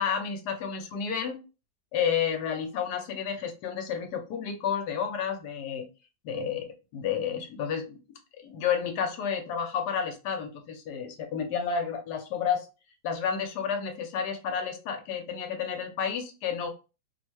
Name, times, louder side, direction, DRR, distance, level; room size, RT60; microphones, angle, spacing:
voice 1, 0.0-1.4 1.9-5.8 6.2-8.0 8.4-12.7 13.0-16.7, left 7 dB, 65° left, 6 dB, 1.1 m, -31 dB
3.3 x 2.1 x 3.0 m, 0.30 s
omnidirectional pair, 2.1 m